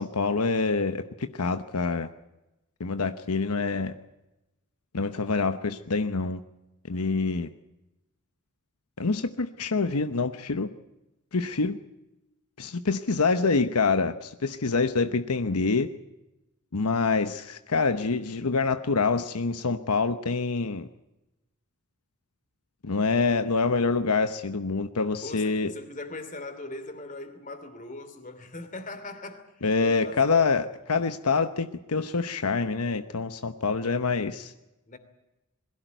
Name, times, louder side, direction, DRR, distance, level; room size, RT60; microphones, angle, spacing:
voice 1, 0.0-2.1 2.8-3.9 4.9-6.4 6.9-7.5 9.0-10.7 11.3-11.8 12.6-15.9 16.7-20.9 22.8-25.7 29.6-34.5, left 4 dB, 85° left, 1.0 m, -26 dB
voice 2, 25.2-30.6 34.9-35.0, left 2 dB, 35° left, 2.9 m, -40 dB
22.0 x 16.5 x 9.2 m
head